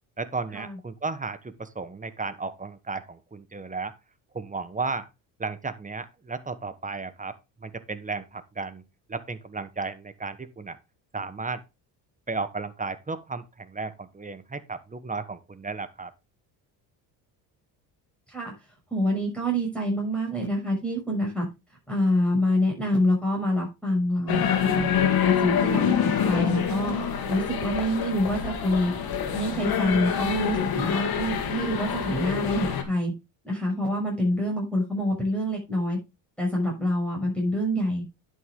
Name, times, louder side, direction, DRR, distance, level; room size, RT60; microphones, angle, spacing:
voice 1, 0.2-3.9 4.3-5.1 5.4-10.8 11.1-11.6 12.3-16.1, right 4 dB, 20° right, 1.3 m, -34 dB
voice 2, 18.9-21.5 21.9-26.9 27.3-28.9 29.3-33.1 33.4-36.0 36.4-38.0, equal, 5° left, 6.2 m, -26 dB
sound 1, 24.3-32.8, left 8 dB, 55° left, 2.4 m, -26 dB
11.0 x 6.4 x 3.7 m
supercardioid pair, 85°, 43 cm